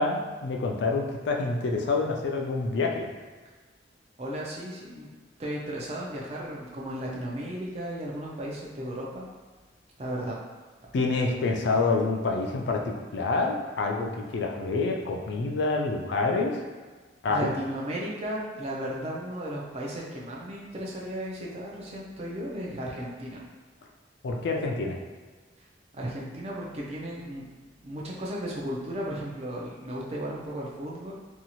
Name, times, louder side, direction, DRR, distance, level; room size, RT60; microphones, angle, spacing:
voice 1, 0.0-3.1 10.9-16.6 17.2-17.5 24.2-25.0, left 3 dB, 60° left, 1 dB, 0.3 m, -27 dB
voice 2, 4.2-5.1 5.4-9.3 10.0-10.4 17.3-23.4 25.9-27.4 27.8-31.2, right 1 dB, 35° right, -3 dB, 0.5 m, -35 dB
2.7 x 2.3 x 2.9 m, 1.4 s
head